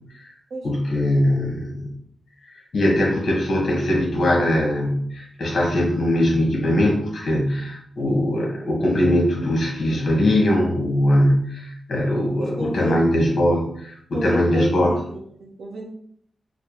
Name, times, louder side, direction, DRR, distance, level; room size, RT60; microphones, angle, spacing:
voice 1, 0.6-1.9 2.7-14.9, left 1 dB, 55° left, -2 dB, 1.2 m, -21 dB
voice 2, 12.4-13.0 14.1-15.8, right 1 dB, 80° right, -1 dB, 0.8 m, -31 dB
4.2 x 2.2 x 3.0 m, 0.65 s
wide cardioid pair, 150°, 0 cm